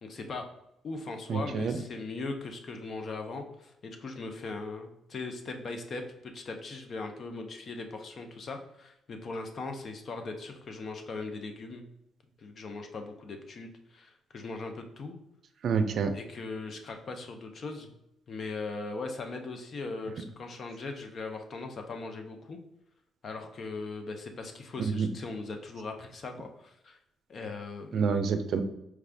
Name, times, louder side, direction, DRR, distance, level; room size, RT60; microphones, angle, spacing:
voice 1, 0.0-0.5 0.8-6.0 6.3-11.8 12.4-15.1 16.1-17.9 18.3-22.6 23.2-27.0 27.3-28.1, left 3 dB, 50° left, 5 dB, 0.7 m, -39 dB
voice 2, 1.3-1.8 15.6-16.1 24.8-25.1 27.9-28.6, right 5 dB, 65° right, 9 dB, 0.4 m, -28 dB
4.7 x 2.4 x 3.4 m, 0.83 s
cardioid pair, 90°, 0 cm